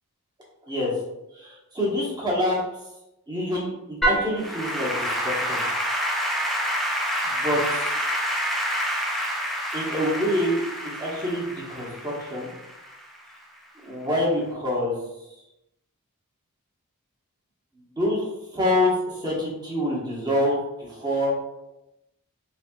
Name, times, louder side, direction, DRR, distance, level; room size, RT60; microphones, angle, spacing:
voice 1, 1.3-2.6 3.3-5.6 7.2-8.0 9.7-12.5 13.8-14.9 18.0-21.3, left 1 dB, 20° right, -5 dB, 1.0 m, -26 dB
Applause / Keyboard (musical), 4.0-13.3, equal, ahead, 0.4 m, -28 dB
4.2 x 2.6 x 2.3 m, 0.91 s
head